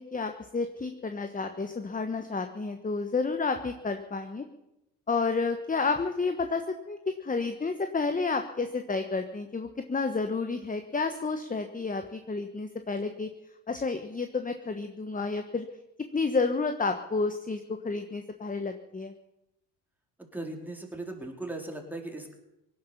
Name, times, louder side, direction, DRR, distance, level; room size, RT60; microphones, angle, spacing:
voice 1, 0.0-4.4 5.1-13.3 13.7-15.7 16.1-19.1, left 4 dB, 20° left, 7 dB, 1.3 m, -30 dB
voice 2, 20.3-22.3, right 2 dB, 5° right, 1 dB, 4.2 m, -38 dB
18.0 x 11.0 x 7.1 m, 0.91 s
supercardioid pair, 80°, 45 cm